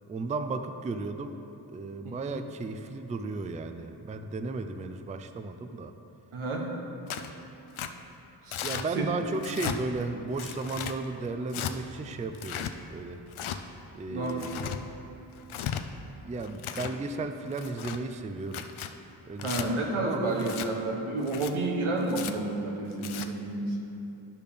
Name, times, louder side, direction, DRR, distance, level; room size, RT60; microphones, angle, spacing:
voice 1, 0.1-1.4 1.7-5.9 8.6-13.2 13.9-14.8 16.2-18.7 19.3-20.5, right 3 dB, 15° right, 8 dB, 0.3 m, -35 dB
voice 2, 6.3-6.7 8.4-8.6 8.9-9.1 14.1-14.4 19.4-23.8, right 2 dB, 85° right, 0 dB, 1.1 m, -30 dB
Tearing, 7.1-7.3 7.8-7.9 8.5-8.9 9.4-9.8 10.4-11.0 11.5-11.7 12.3-12.7 13.3-13.6 14.3-14.8 15.4-15.8 16.4-17.0 17.5-18.0 18.5-18.9 19.4-19.7 20.4-20.7 21.2-21.5 22.1-22.3 22.9-23.3, left 9 dB, 80° left, 0.6 m, -35 dB
12.0 x 5.0 x 3.5 m, 3.0 s
cardioid pair, 55°, 48 cm